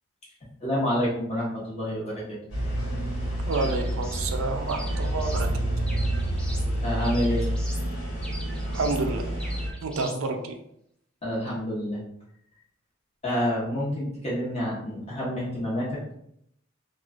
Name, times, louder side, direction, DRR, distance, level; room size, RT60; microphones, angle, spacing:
voice 1, 0.6-2.4 6.8-7.5 11.2-12.0 13.2-16.1, equal, 30° left, -6 dB, 1.0 m, -28 dB
sound 1, 2.5-9.7, right 1 dB, 85° left, 1.2 m, -28 dB
sound 2, 3.5-4.3 4.7-5.5 5.9-6.7 7.0-7.9 8.2-9.1 9.4-10.2, equal, 5° left, 0.4 m, -42 dB
voice 2, 3.5-5.5 8.7-9.2 9.8-10.5, right 3 dB, 75° right, 5 dB, 0.4 m, -29 dB
3.1 x 2.4 x 2.4 m, 0.73 s
head